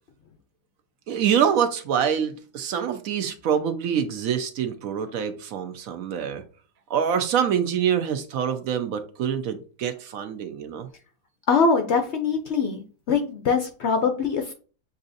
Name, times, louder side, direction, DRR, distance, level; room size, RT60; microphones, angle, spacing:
voice 1, 1.1-6.4 6.9-10.9, right 8 dB, 65° right, 1.0 m, -25 dB
voice 2, 11.5-14.5, left 5 dB, 65° left, 0.6 m, -23 dB
7.1 x 2.7 x 2.5 m
omnidirectional pair, 1.7 m